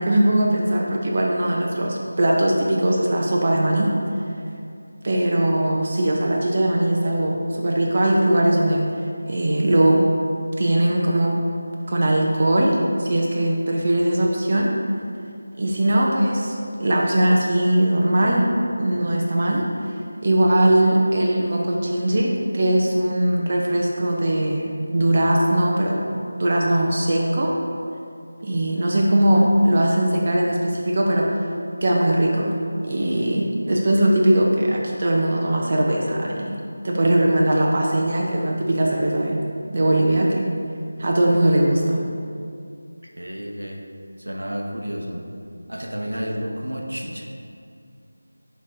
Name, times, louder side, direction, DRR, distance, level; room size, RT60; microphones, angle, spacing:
voice 1, 0.0-3.9 5.0-8.9 9.2-10.0 10.6-11.4 11.9-14.7 15.5-18.5 18.8-19.7 20.2-27.5 28.4-31.4 31.8-32.5 32.8-36.6 36.8-39.4 39.7-40.5 41.0-42.0, right 1 dB, 45° right, -2 dB, 0.6 m, -20 dB
voice 2, 43.2-43.9 44.2-45.3 45.7-47.2, equal, 90° right, 0 dB, 0.8 m, -31 dB
6.1 x 4.1 x 3.7 m, 2.4 s
figure-of-eight pair, 170°, 0 cm